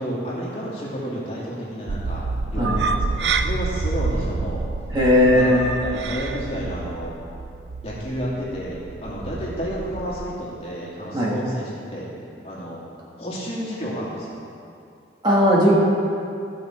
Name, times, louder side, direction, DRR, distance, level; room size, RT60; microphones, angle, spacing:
voice 1, 0.0-4.6 5.3-5.6 5.8-7.1 7.8-12.1 12.4-12.8 13.2-14.4, equal, 35° left, -7 dB, 2.4 m, -31 dB
sound 1, 1.9-10.3, right 4 dB, 75° right, 0.5 m, -28 dB
voice 2, 4.9-5.6 11.1-11.3 15.2-15.7, equal, 25° right, -6 dB, 1.7 m, -17 dB
15.5 x 6.1 x 4.4 m, 2.5 s
head